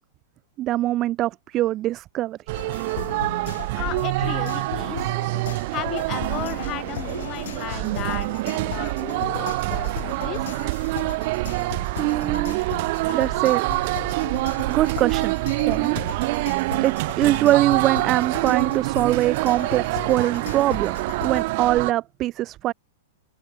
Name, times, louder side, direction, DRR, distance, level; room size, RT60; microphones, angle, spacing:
voice 1, 0.6-2.4 11.9-12.6 13.1-13.6 14.7-16.2 16.8-22.7, right 14 dB, 30° right, 0.4 m, -23 dB
sound 1, 2.5-21.4, left 11 dB, 70° left, 5.5 m, -37 dB
sound 2, 2.5-21.9, right 23 dB, 50° right, 1.4 m, -26 dB
voice 2, 3.7-5.2 5.7-10.5, left 16 dB, 35° left, 2.3 m, -35 dB
open air
hypercardioid pair, 130°, 0 cm